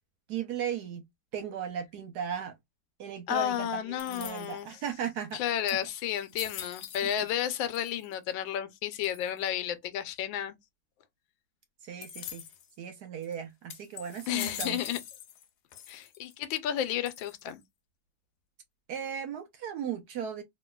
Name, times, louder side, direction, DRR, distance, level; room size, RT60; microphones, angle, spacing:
voice 1, 0.3-1.0 1.3-2.5 3.0-5.4 11.8-12.4 12.8-14.8 18.9-20.4, right 8 dB, 70° right, 1.0 m, -36 dB
voice 2, 3.3-4.7 5.3-10.6 14.3-15.0 15.9-17.6, left 10 dB, 85° left, 1.3 m, -32 dB
sound 1, 4.0-4.7 5.3-5.4 5.7-7.4 7.7-8.3 9.0-9.5 12.0-12.7 13.2-13.3 13.7-15.5 15.7-16.3 17.1-17.6, left 9 dB, 70° left, 1.1 m, -43 dB
3.2 x 2.8 x 2.2 m
omnidirectional pair, 2.1 m